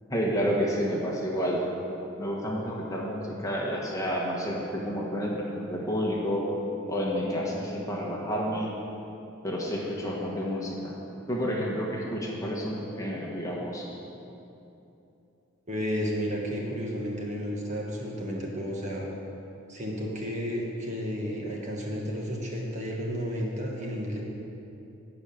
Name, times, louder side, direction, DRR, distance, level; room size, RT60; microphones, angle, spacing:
voice 1, 0.1-1.6 2.2-6.4 6.9-8.7 9.4-11.0 11.3-13.9, equal, 15° left, -3 dB, 1.3 m, -30 dB
voice 2, 15.7-19.1 19.7-24.2, equal, 35° right, -2 dB, 1.7 m, -32 dB
12.5 x 5.0 x 8.8 m, 2.9 s
head